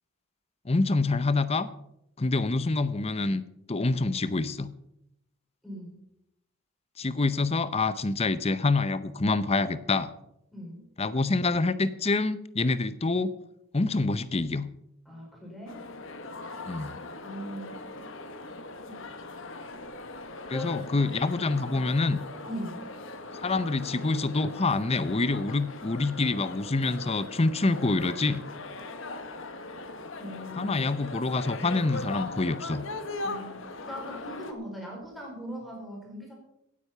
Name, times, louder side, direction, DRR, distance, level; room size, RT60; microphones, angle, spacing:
voice 1, 0.6-1.7 2.2-3.4 3.7-4.7 7.0-10.1 11.0-13.3 13.7-14.7 16.7-16.9 20.5-22.2 23.4-28.4 30.6-32.8, left 3 dB, 30° left, 14 dB, 0.7 m, -26 dB
voice 2, 5.6-6.0 10.5-10.8 15.0-15.8 17.2-17.8 18.9-19.1 20.5-20.7 22.5-22.9 30.2-30.8 33.2-36.3, equal, ahead, -2 dB, 4.1 m, -40 dB
sound 1, 15.7-34.5, left 2 dB, 60° left, 1.2 m, -40 dB
17.0 x 8.5 x 5.6 m, 0.80 s
head